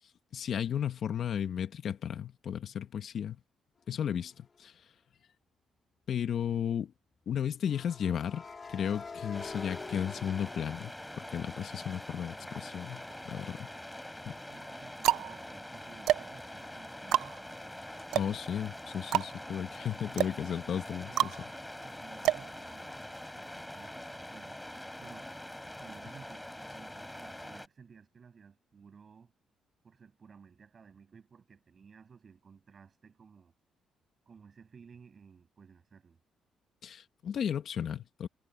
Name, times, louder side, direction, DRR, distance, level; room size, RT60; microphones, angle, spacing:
voice 1, 0.3-3.4 3.9-4.7 6.1-6.9 7.3-8.4 8.7-10.9 11.2-13.7 14.3-14.4 18.1-21.3 36.8-38.3, left 8 dB, 60° left, 1.8 m, -34 dB
sound 1, 4.3-4.6 7.6-11.5 11.9-15.5, left 4 dB, 35° left, 2.4 m, -48 dB
sound 2, 9.3-27.7, left 1 dB, 5° left, 5.6 m, -44 dB
sound 3, 13.1-13.8 14.5-23.2, right 13 dB, 85° right, 0.5 m, -32 dB
voice 2, 14.5-17.4 20.0-21.3 21.8-23.0 23.3-24.6 25.0-25.3 25.8-29.3 29.8-33.5 34.3-36.2, right 6 dB, 45° right, 7.9 m, -55 dB
cardioid pair, 90°, 0 cm